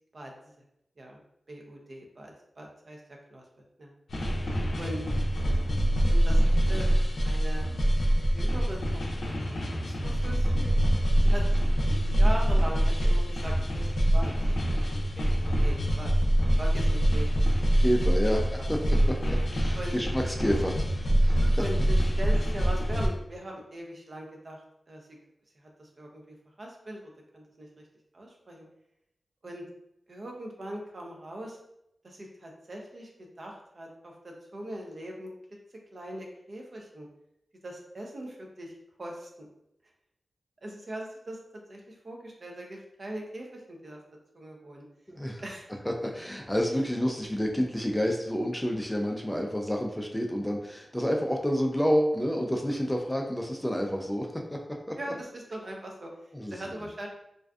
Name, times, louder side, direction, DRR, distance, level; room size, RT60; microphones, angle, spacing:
voice 1, 1.5-3.0 3.3-3.4 3.8-3.9 4.8-5.1 6.1-6.9 7.1-7.7 8.3-9.4 9.8-10.8 11.2-11.4 11.9-14.5 15.2-16.1 16.6-17.7 18.2-18.7 19.7-20.0 21.6-25.0 25.6-27.0 27.3-27.7 28.1-28.7 29.4-29.6 30.1-31.6 32.0-35.3 35.9-37.1 37.6-39.5 40.6-41.4 41.7-44.0 44.3-44.8 45.4-45.7 55.0-56.1 56.5-57.1, right 1 dB, 55° right, 0 dB, 0.5 m, -40 dB
sound 1, 4.1-23.1, equal, 75° left, 0.4 m, -25 dB
voice 2, 17.8-21.6 45.1-45.4 46.0-54.6 54.9-55.0 56.3-56.5, equal, 5° left, 2 dB, 0.3 m, -29 dB
2.4 x 2.3 x 2.3 m, 0.80 s
wide cardioid pair, 75°, 0 cm